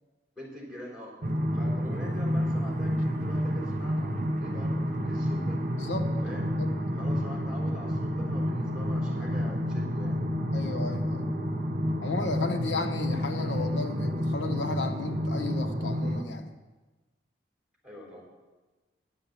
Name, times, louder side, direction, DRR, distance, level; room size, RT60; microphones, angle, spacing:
voice 1, 0.4-1.1 1.5-5.6 6.2-6.5 6.9-10.2 17.8-18.3, left 1 dB, 5° right, -3 dB, 4.1 m, -44 dB
sound 1, 1.2-16.2, equal, 45° right, 1.0 m, -29 dB
voice 2, 5.8-6.2 6.6-6.7 10.5-11.3 12.0-16.6, left 3 dB, 80° left, 4 dB, 1.0 m, -34 dB
10.5 x 7.8 x 7.5 m, 1.2 s
head